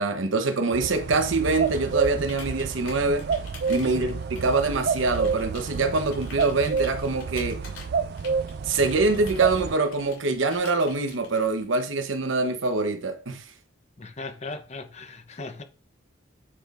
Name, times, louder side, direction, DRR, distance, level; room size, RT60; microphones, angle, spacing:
voice 1, 0.0-3.3 3.7-7.6 8.6-13.5, right 3 dB, 80° right, 0.9 m, -24 dB
sound 1, 0.7-9.8, right 5 dB, 55° right, 0.4 m, -29 dB
Computer keyboard, 1.5-11.8, left 4 dB, 85° left, 2.6 m, -48 dB
voice 2, 14.0-15.6, left 3 dB, 35° left, 0.8 m, -37 dB
8.6 x 5.0 x 2.5 m
head